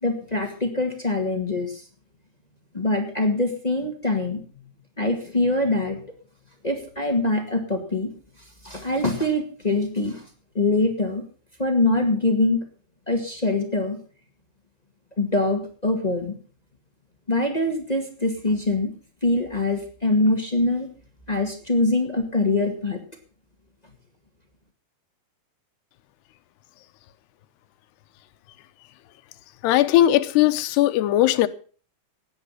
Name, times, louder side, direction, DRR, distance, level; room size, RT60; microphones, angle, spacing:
voice 1, 0.0-1.8 2.7-4.4 5.0-6.0 6.6-8.1 8.6-10.2 10.5-11.2 11.6-12.6 13.1-14.0 15.2-16.3 17.3-18.9 19.2-20.9 21.3-23.0, left 2 dB, 35° left, 0.6 m, -23 dB
voice 2, 29.6-31.5, left 14 dB, 90° left, 3.0 m, -18 dB
16.5 x 10.5 x 5.6 m
omnidirectional pair, 4.6 m